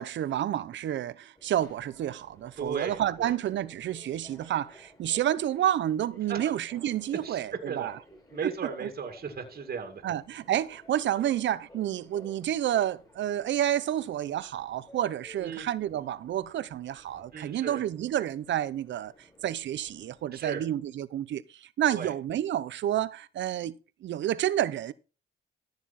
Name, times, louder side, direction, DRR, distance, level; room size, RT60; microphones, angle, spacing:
voice 1, 0.0-8.0 8.4-8.5 8.8-8.9 10.0-23.7 24.0-24.9, right 11 dB, 65° right, 0.8 m, -30 dB
Subway metro underground, 1.4-20.7, left 1 dB, 15° left, 6.4 m, -56 dB
voice 2, 2.6-3.4 6.3-6.5 7.2-7.9 8.3-10.0 15.4-15.7 17.3-17.8 20.3-20.6 21.9-22.1, right 6 dB, 50° right, 2.2 m, -36 dB
14.0 x 7.0 x 4.2 m
cardioid pair, 90°, 20 cm